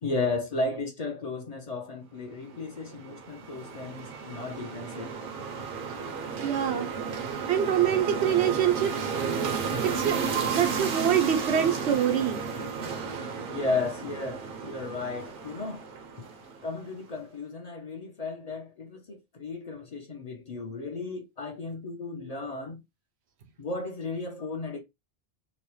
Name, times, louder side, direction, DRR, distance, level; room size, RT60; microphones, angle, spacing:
voice 1, 0.0-5.2 13.5-15.9 16.6-22.8 23.6-24.8, left 3 dB, 45° left, 0.6 m, -34 dB
sound 1, 2.5-16.9, right 5 dB, 60° right, 0.7 m, -33 dB
voice 2, 6.4-6.9 7.5-9.2 9.8-10.2 10.5-12.4, right 9 dB, 85° right, 0.9 m, -25 dB
2.9 x 2.0 x 3.0 m
omnidirectional pair, 1.1 m